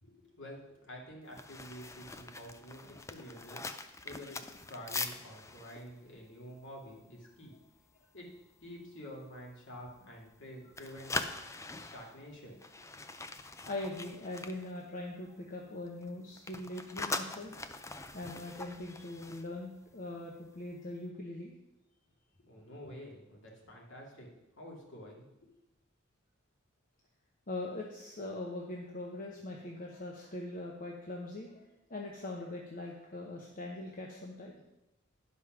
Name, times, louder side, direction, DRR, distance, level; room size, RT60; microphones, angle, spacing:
voice 1, 0.0-7.5 8.1-8.3 8.6-11.3 11.8-12.6 22.4-24.3 24.6-25.5, equal, 60° left, -2 dB, 2.5 m, -49 dB
sound 1, 1.3-7.4 7.7-8.0 8.4-8.7 9.2-10.4 10.7-15.4 15.7-20.2 20.5-20.7, left 3 dB, 15° left, 0.4 m, -43 dB
voice 2, 13.7-17.5 18.1-21.5 27.5-34.5, left 2 dB, 40° left, -1 dB, 1.0 m, -41 dB
10.5 x 5.4 x 6.0 m, 0.92 s
head